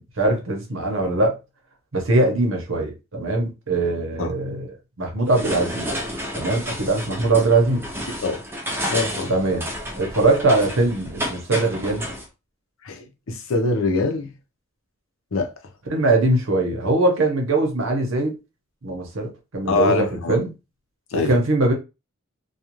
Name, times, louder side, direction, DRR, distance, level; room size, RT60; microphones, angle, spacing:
voice 1, 0.0-1.4 1.9-4.7 5.0-5.9 6.3-7.9 9.3-9.7 9.9-12.1 15.9-18.4 18.8-20.5 21.1-21.7, right 2 dB, 70° right, 0.9 m, -21 dB
sound 1, 5.2-12.2, equal, 10° right, 0.6 m, -31 dB
voice 2, 8.9-9.3 12.8-14.3 15.3-15.5 19.7-20.4 21.1-21.3, left 3 dB, 75° left, 0.6 m, -23 dB
2.4 x 2.3 x 2.9 m
head